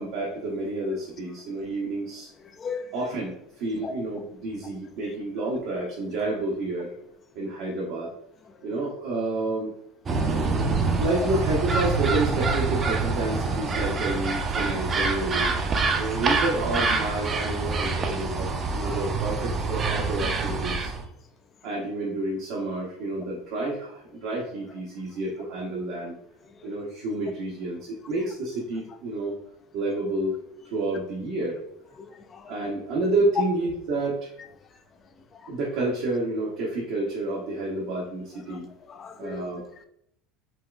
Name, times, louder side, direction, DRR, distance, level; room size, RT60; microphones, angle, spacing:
voice 1, 0.0-2.3 2.9-6.9 7.3-8.1 8.6-9.7 11.0-15.5 16.0-20.9 21.6-26.2 26.6-29.3 29.7-30.3 30.6-31.6 32.5-34.3 35.5-38.7 39.2-39.9, right 2 dB, 70° right, 0.8 m, -29 dB
voice 2, 2.6-2.9 3.8-3.9 10.4-11.0 18.8-19.0 32.0-32.5 38.5-38.6 38.9-39.4, left 5 dB, 35° left, 0.3 m, -38 dB
sound 1, 10.1-21.0, right 4 dB, 35° right, 0.5 m, -26 dB
4.1 x 2.3 x 2.3 m
supercardioid pair, 90°, 0 cm